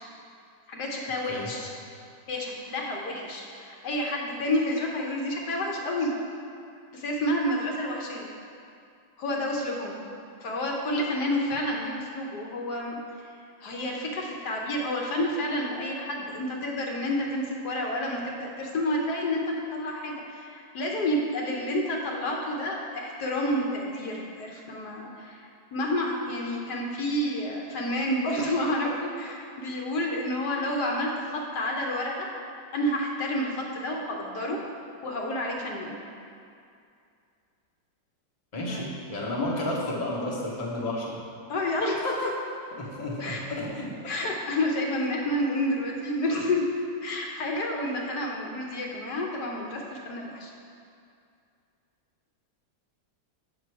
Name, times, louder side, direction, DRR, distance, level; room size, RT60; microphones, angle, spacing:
voice 1, 0.7-1.7 2.3-6.1 6.9-8.3 9.2-10.0 10.4-13.0 13.6-32.3 32.7-34.6 35.0-36.0 38.7-38.8 41.5-42.3 43.2-43.4 44.1-46.7 47.0-50.5, left 1 dB, 65° left, -1 dB, 1.3 m, -29 dB
voice 2, 38.5-41.2 42.0-42.1 42.8-44.1, left 1 dB, 25° left, -4 dB, 0.9 m, -32 dB
7.4 x 6.1 x 4.6 m, 2.4 s
omnidirectional pair, 1.9 m